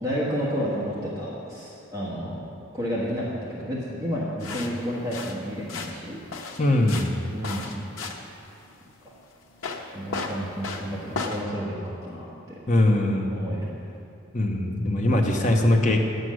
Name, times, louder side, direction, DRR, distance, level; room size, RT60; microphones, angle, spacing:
voice 1, 0.0-2.4 2.7-6.2 6.5-6.7 7.3-7.9 9.9-12.3 13.3-13.6, equal, 15° right, -7 dB, 1.4 m, -31 dB
sound 1, 4.4-11.4, left 4 dB, 90° left, 1.0 m, -35 dB
voice 2, 6.6-7.2 12.7-13.4 14.3-16.0, left 1 dB, 35° left, 2 dB, 0.9 m, -21 dB
9.8 x 7.9 x 6.3 m, 2.6 s
head